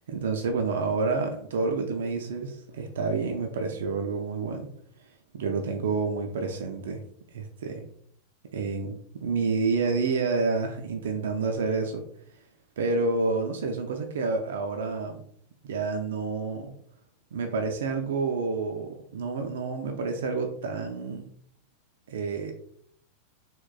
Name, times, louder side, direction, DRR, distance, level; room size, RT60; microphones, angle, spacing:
voice 1, 0.1-4.7 5.3-7.0 7.3-7.8 8.5-12.0 12.8-15.2 15.6-16.7 17.3-21.2 22.1-22.5, right 4 dB, 60° right, 4 dB, 0.3 m, -29 dB
3.5 x 2.2 x 2.2 m, 0.63 s
figure-of-eight pair, 90°, 0 cm